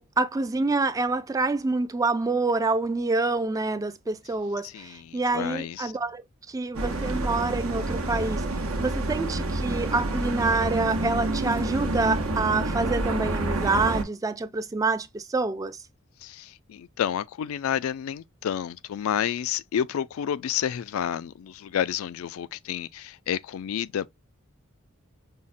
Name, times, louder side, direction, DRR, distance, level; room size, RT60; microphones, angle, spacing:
voice 1, 0.0-15.8, right 3 dB, 15° right, 0.3 m, -27 dB
voice 2, 4.6-5.9 16.2-24.1, left 9 dB, 70° left, 0.3 m, -30 dB
sound 1, 6.7-14.0, right 2 dB, 75° right, 0.8 m, -28 dB
5.4 x 2.1 x 2.5 m
head